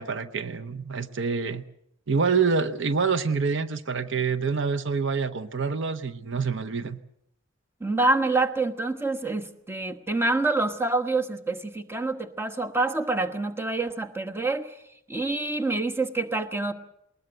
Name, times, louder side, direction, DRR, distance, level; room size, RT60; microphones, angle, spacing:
voice 1, 0.0-1.6 2.1-7.0, right 5 dB, 65° right, 10 dB, 0.8 m, -26 dB
voice 2, 7.8-14.7 15.1-16.7, right 2 dB, 10° right, 5 dB, 1.2 m, -26 dB
20.0 x 20.0 x 7.9 m, 0.75 s
head